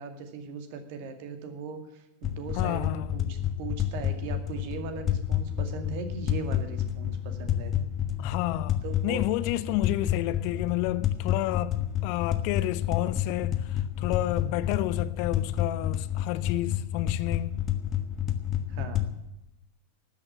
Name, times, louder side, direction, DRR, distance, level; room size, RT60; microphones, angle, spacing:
voice 1, 0.0-7.7 8.8-9.2 18.7-19.2, right 5 dB, 45° right, 2.2 m, -39 dB
sound 1, 2.2-19.0, left 10 dB, 30° left, 1.3 m, -30 dB
voice 2, 2.5-3.1 8.2-17.5, left 15 dB, 45° left, 0.6 m, -31 dB
13.0 x 8.8 x 8.5 m
figure-of-eight pair, 90°, 0 cm